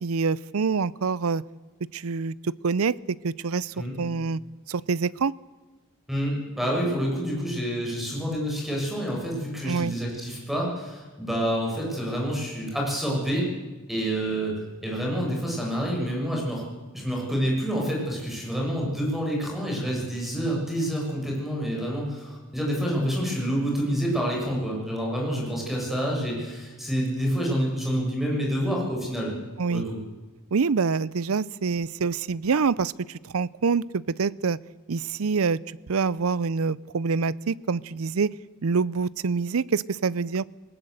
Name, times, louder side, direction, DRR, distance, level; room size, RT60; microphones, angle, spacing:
voice 1, 0.0-1.4 1.9-4.4 4.7-5.3 9.7-9.9 29.6-29.8 30.5-34.6 34.9-35.6 35.9-38.3 38.6-40.4, right 5 dB, 80° right, 21 dB, 0.6 m, -26 dB
voice 2, 6.1-13.5 13.9-14.5 14.8-16.6 16.9-29.3 29.7-30.0, equal, ahead, -2 dB, 6.9 m, -28 dB
19.5 x 19.0 x 8.0 m, 1.2 s
head